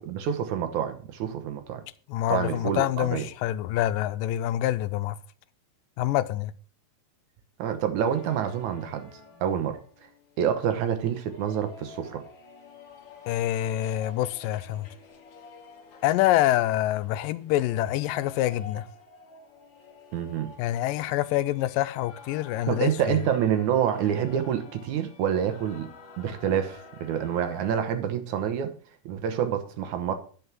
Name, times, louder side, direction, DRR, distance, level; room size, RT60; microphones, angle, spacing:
voice 1, 0.0-1.8 2.3-3.3 7.6-9.8 10.4-12.2 20.1-20.5 22.7-25.9 26.2-28.7 29.1-30.1, right 9 dB, 70° right, 2.3 m, -27 dB
voice 2, 2.1-5.2 6.0-6.5 13.3-14.9 16.0-18.9 20.6-23.2, left 14 dB, 85° left, 2.3 m, -26 dB
sound 1, 8.0-27.8, left 4 dB, 50° left, 1.5 m, -50 dB
10.0 x 6.0 x 6.1 m
omnidirectional pair, 3.9 m